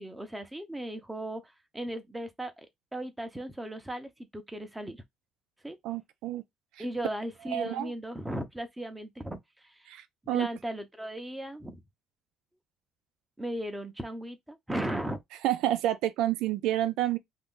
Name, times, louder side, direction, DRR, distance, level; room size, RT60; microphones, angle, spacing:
voice 1, 0.0-1.4 1.7-2.7 2.9-5.0 5.6-5.8 6.8-9.9 10.3-11.8 13.4-15.2, right 1 dB, 5° right, 0.7 m, -36 dB
voice 2, 5.8-6.4 6.8-6.9 7.5-7.9 9.9-10.5 15.4-17.2, right 13 dB, 85° right, 0.4 m, -29 dB
2.5 x 2.5 x 3.6 m
cardioid pair, 130°, 0 cm